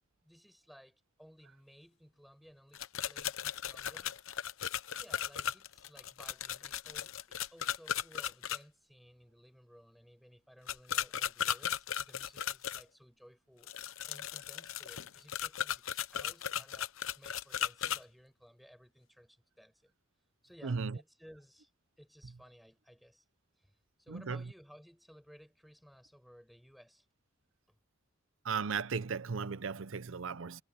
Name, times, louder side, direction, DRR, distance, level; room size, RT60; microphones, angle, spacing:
voice 1, 0.2-4.1 4.9-19.9 20.4-21.7 22.0-23.2 23.6-27.1 27.7-27.8, equal, ahead, 7.9 m, -58 dB
sound 1, 2.7-8.6 10.7-12.8 13.6-18.0, left 9 dB, 75° left, 0.9 m, -36 dB
voice 2, 20.6-21.0 24.1-24.5 28.4-30.6, right 5 dB, 65° right, 0.6 m, -36 dB
head